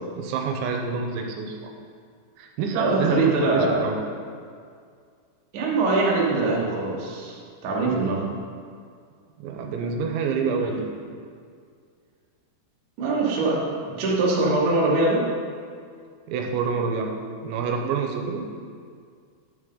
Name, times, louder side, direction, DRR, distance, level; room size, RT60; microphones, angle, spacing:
voice 1, 0.2-1.7 2.4-4.0 9.4-10.9 16.3-17.1 17.4-18.4, right 5 dB, 85° right, 2 dB, 3.0 m, -27 dB
voice 2, 2.7-3.9 5.5-8.3 10.6-10.7 13.0-15.3, right 2 dB, 65° right, -3 dB, 2.0 m, -23 dB
10.0 x 6.2 x 3.8 m, 2.1 s
omnidirectional pair, 5.3 m